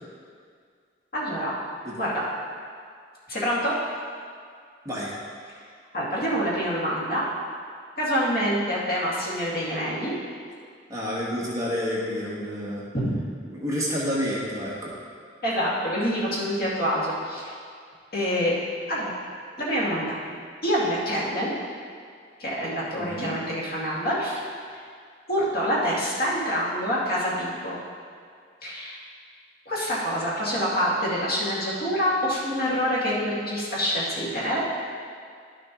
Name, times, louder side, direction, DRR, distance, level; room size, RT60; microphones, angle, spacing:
voice 1, 1.1-1.5 2.0-2.2 3.3-3.8 5.9-7.2 8.0-10.1 12.9-13.2 15.4-17.5 18.1-18.5 18.9-19.2 19.6-20.1 20.6-21.5 22.4-24.4 25.3-27.7 28.6-29.0 29.7-34.6, equal, 55° left, -7 dB, 2.2 m, -26 dB
voice 2, 10.9-12.8 13.5-14.9 23.0-23.3, equal, 20° right, -7 dB, 1.4 m, -29 dB
11.5 x 6.4 x 3.1 m, 2.1 s
head